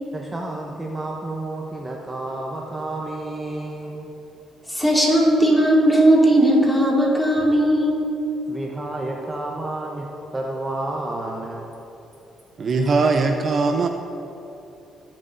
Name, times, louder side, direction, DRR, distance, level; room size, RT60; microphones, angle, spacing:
voice 1, 0.1-4.1 8.5-10.1 10.3-11.7, right 2 dB, 20° right, -1 dB, 0.9 m, -30 dB
voice 2, 4.7-8.1, right 1 dB, 10° left, -3 dB, 2.2 m, -17 dB
voice 3, 12.6-13.9, right 4 dB, 45° right, 4 dB, 0.6 m, -20 dB
15.0 x 7.4 x 2.6 m, 2.9 s
cardioid pair, 90°, 0 cm